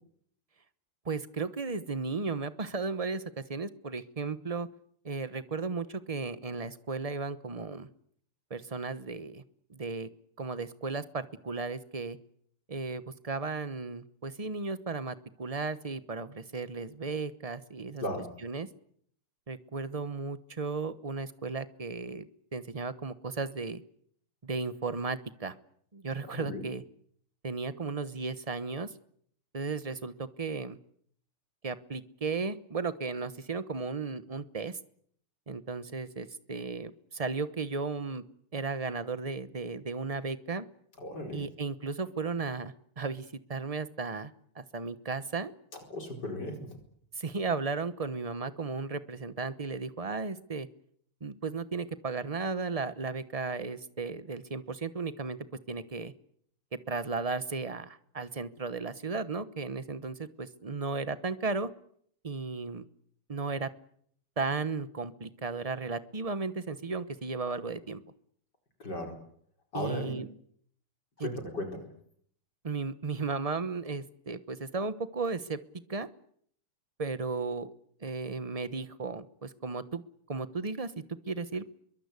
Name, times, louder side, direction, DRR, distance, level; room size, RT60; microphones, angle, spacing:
voice 1, 1.0-4.7 5.0-7.9 8.5-9.4 9.7-10.1 10.4-12.2 12.7-18.0 18.4-18.7 19.5-22.3 22.5-23.8 24.4-25.5 25.9-26.8 27.4-28.9 29.5-30.8 31.6-34.8 35.5-38.2 38.5-40.6 41.3-45.5 47.2-50.7 51.2-55.4 55.7-56.1 56.9-61.7 62.2-62.9 63.3-63.7 64.4-68.0 69.7-70.3 71.2-71.3 72.6-75.6 75.9-76.1 77.0-77.7 78.0-80.0 80.3-81.7, right 4 dB, 30° right, 13 dB, 0.6 m, -35 dB
voice 2, 41.0-41.4 45.9-46.7 68.8-69.2 69.7-70.2 71.2-71.8, left 1 dB, 50° left, 3 dB, 5.2 m, -36 dB
25.5 x 23.0 x 8.3 m, 0.66 s
omnidirectional pair, 2.4 m